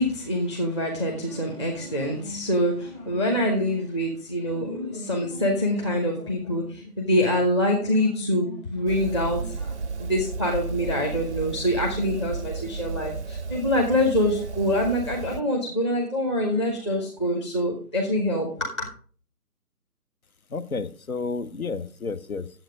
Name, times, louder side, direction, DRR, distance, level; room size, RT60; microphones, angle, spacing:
voice 1, 0.0-18.9, left 1 dB, 20° left, 1 dB, 1.0 m, -25 dB
sound 1, 8.9-15.4, right 4 dB, 50° right, 0.4 m, -33 dB
voice 2, 20.5-22.5, left 4 dB, 60° left, 15 dB, 1.0 m, -31 dB
9.2 x 7.8 x 5.0 m, 0.43 s
figure-of-eight pair, 155°, 47 cm